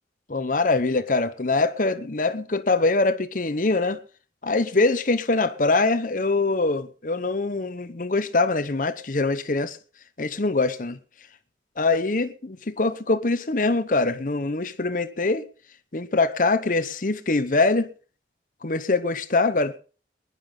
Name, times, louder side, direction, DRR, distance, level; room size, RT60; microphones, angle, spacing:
voice 1, 0.3-4.0 4.4-9.8 10.2-11.0 11.8-15.4 15.9-17.9 18.6-19.8, left 3 dB, 50° left, 0.9 m, -23 dB
21.0 x 11.0 x 3.8 m
head